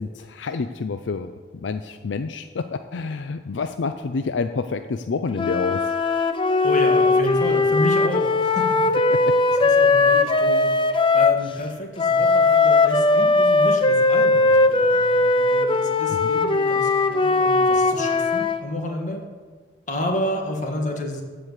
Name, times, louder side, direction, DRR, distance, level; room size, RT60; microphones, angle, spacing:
voice 1, 0.0-1.3 1.6-5.8 9.1-9.4 16.2-16.3, left 4 dB, 80° left, 9 dB, 0.5 m, -28 dB
sound 1, 5.3-11.4 12.0-18.6, left 3 dB, 30° left, 0.6 m, -19 dB
voice 2, 6.6-8.9 9.5-10.7 11.1-19.2 19.9-21.2, left 1 dB, 45° left, 3 dB, 1.7 m, -30 dB
14.5 x 4.9 x 8.0 m, 1.5 s
head